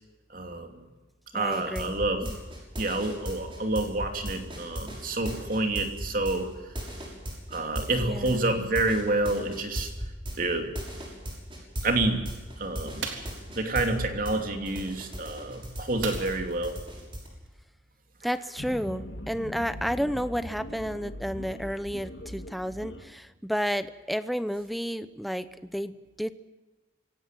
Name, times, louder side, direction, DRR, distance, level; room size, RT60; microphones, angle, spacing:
voice 1, 0.3-0.8 1.3-2.2 2.8-6.5 7.5-9.9 10.4-10.7 11.8-12.2 12.6-13.1 13.5-16.8, right 2 dB, 45° right, 5 dB, 2.9 m, -28 dB
voice 2, 1.3-1.9 2.2-2.4 8.0-8.4 18.2-26.3, equal, ahead, 12 dB, 0.7 m, -31 dB
sound 1, 1.5-14.4 14.6-17.3, equal, 25° right, 6.4 m, -36 dB
sound 2, 13.0-13.4 16.0-16.6 17.0-17.1 17.5-17.6, right 5 dB, 85° right, 3.7 m, -36 dB
sound 3, 18.6-23.0, left 1 dB, 65° left, 2.0 m, -40 dB
26.0 x 17.5 x 7.7 m, 1.2 s
head